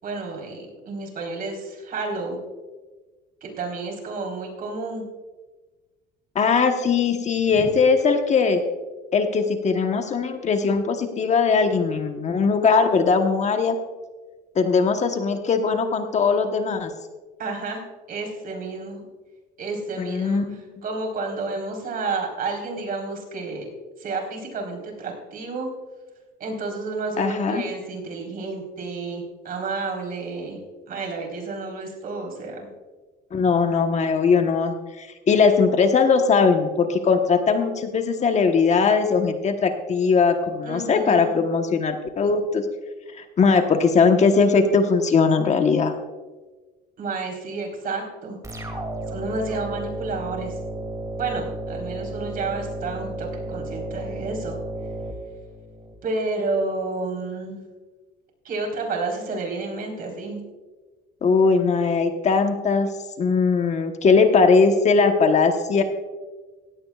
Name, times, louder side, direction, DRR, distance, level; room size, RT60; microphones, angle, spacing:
voice 1, 0.0-2.4 3.4-5.0 7.6-7.7 17.4-17.8 18.1-19.1 19.6-23.7 24.0-25.7 26.4-30.6 30.9-32.7 40.6-41.4 47.0-48.4 49.1-50.6 51.2-54.6 56.0-57.6 58.4-60.4, right 3 dB, 50° right, 0 dB, 4.2 m, -30 dB
voice 2, 6.3-8.6 9.1-13.7 14.5-16.9 20.0-20.6 27.2-27.6 33.3-42.6 43.2-45.9 61.2-62.9 63.2-65.8, left 5 dB, 40° left, 6 dB, 1.2 m, -20 dB
sound 1, 48.4-55.9, right 1 dB, 20° right, 2.6 m, -33 dB
17.0 x 16.0 x 2.4 m, 1.3 s
cardioid pair, 105°, 19 cm